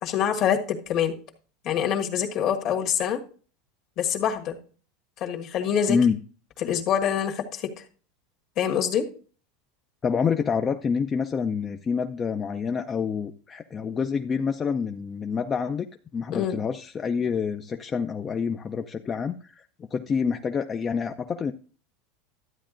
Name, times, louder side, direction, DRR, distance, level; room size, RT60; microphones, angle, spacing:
voice 1, 0.0-1.2 1.6-3.2 4.0-4.6 5.2-6.0 6.6-7.7 8.6-9.1 16.3-16.6, left 8 dB, 50° left, 3 dB, 1.5 m, -25 dB
voice 2, 10.0-15.9 16.1-21.5, left 6 dB, 25° left, 6 dB, 0.4 m, -27 dB
12.5 x 8.6 x 2.5 m, 0.40 s
supercardioid pair, 120°, 0 cm